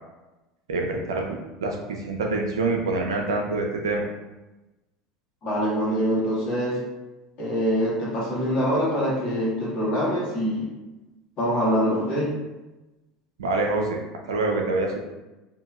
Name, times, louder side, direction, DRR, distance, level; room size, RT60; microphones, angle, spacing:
voice 1, 0.7-4.0 13.4-14.0 14.3-15.0, right 3 dB, 80° right, 1 dB, 0.5 m, -26 dB
voice 2, 5.4-6.8 7.4-10.7 11.4-12.3, equal, 50° left, -6 dB, 1.4 m, -24 dB
2.8 x 2.6 x 2.4 m, 1.1 s
hypercardioid pair, 75°, 3 cm